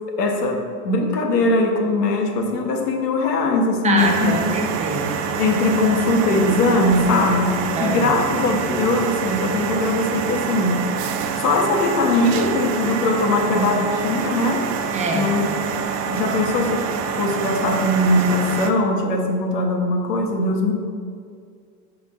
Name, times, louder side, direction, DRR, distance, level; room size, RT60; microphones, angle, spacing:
voice 1, 0.2-4.4 5.4-10.8 11.4-14.7 15.1-16.9 17.2-20.7, left 2 dB, 85° left, 2 dB, 1.3 m, -21 dB
voice 2, 3.8-5.2 7.7-8.1 14.9-15.3, right 2 dB, 15° right, 0 dB, 0.6 m, -24 dB
sound 1, 4.0-18.7, right 6 dB, 80° right, 0.8 m, -26 dB
10.5 x 3.9 x 3.7 m, 2.2 s
supercardioid pair, 135°, 47 cm